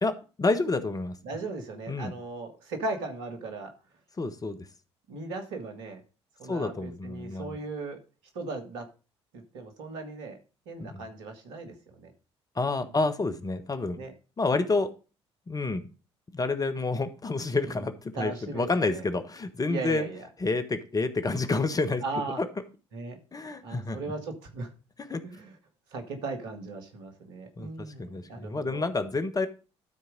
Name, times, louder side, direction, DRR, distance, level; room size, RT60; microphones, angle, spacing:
voice 1, 0.0-1.1 1.9-2.1 4.2-4.7 6.5-7.6 10.8-11.1 12.5-14.0 14.4-14.9 15.5-15.9 16.3-20.1 20.4-22.0 22.4-22.5 23.3-24.0 25.1-25.2 27.6-29.5, left 3 dB, 25° left, 9 dB, 1.3 m, -29 dB
voice 2, 1.2-3.7 5.1-6.0 6.4-8.0 8.3-8.8 9.3-10.4 10.7-12.1 14.0-14.1 18.2-19.0 19.7-20.3 22.0-22.4 22.9-23.2 23.6-24.7 25.2-25.5 25.9-28.9, right 3 dB, 65° right, 5 dB, 1.8 m, -37 dB
12.0 x 4.7 x 5.1 m, 0.33 s
figure-of-eight pair, 50°, 15 cm